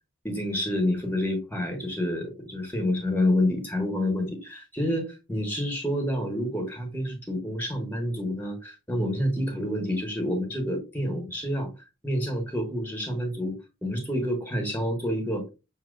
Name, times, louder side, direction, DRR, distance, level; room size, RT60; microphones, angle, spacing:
voice 1, 0.2-11.7 12.0-15.4, left 1 dB, 10° left, 4 dB, 1.2 m, -28 dB
6.5 x 2.8 x 2.4 m, 0.27 s
head